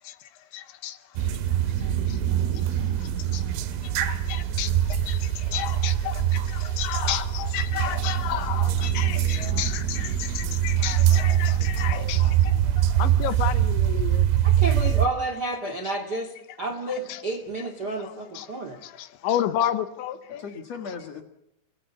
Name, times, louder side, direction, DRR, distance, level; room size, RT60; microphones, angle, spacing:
voice 1, 0.0-14.3 15.8-15.9 16.9-17.2 18.0-20.4, left 11 dB, 75° left, 3.3 m, -33 dB
sound 1, 1.2-15.1, right 11 dB, 85° right, 3.9 m, -24 dB
voice 2, 5.4-6.8 8.7-9.7 10.3-13.0 20.4-21.2, left 5 dB, 60° left, 1.7 m, -43 dB
voice 3, 14.6-18.8, right 2 dB, 70° right, 0.9 m, -30 dB
29.5 x 19.5 x 7.1 m
omnidirectional pair, 5.5 m